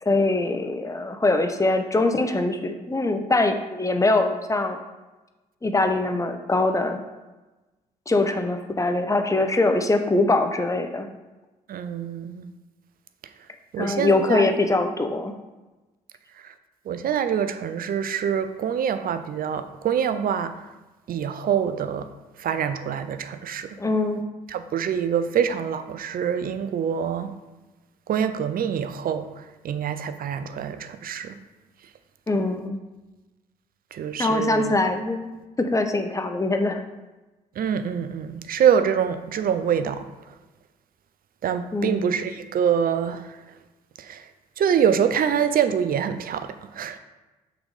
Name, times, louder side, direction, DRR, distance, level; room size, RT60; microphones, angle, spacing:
voice 1, 0.0-4.8 5.6-7.0 8.1-11.1 13.8-15.3 23.8-24.2 32.3-32.8 34.2-35.3 35.6-36.8 41.7-42.1, left 2 dB, 15° left, 7 dB, 0.8 m, -23 dB
voice 2, 11.7-12.5 13.7-14.5 16.4-16.5 16.9-20.5 21.1-22.1 22.4-23.8 24.5-27.3 28.1-29.3 29.6-31.3 33.9-34.8 37.6-40.1 41.4-43.4 44.0-44.2 44.6-47.0, right 8 dB, 50° right, 10 dB, 0.6 m, -25 dB
6.0 x 4.0 x 4.9 m, 1.1 s
hypercardioid pair, 45°, 19 cm